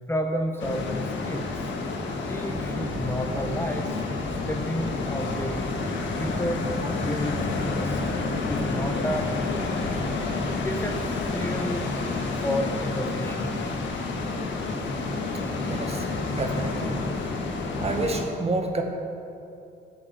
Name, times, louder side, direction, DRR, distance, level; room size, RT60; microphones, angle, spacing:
voice 1, 0.1-1.6 2.3-4.0 4.5-5.6 6.1-7.4 7.7-8.0 8.5-9.9 10.6-11.0 11.3-11.8 12.4-13.7, equal, 10° left, 3 dB, 1.1 m, -31 dB
sound 1, 0.6-18.2, left 3 dB, 70° left, 1.8 m, -29 dB
voice 2, 15.7-16.1 16.3-17.0 17.8-18.8, right 2 dB, 30° right, 3 dB, 1.8 m, -28 dB
13.0 x 8.9 x 6.8 m, 2.7 s
cardioid pair, 90°, 20 cm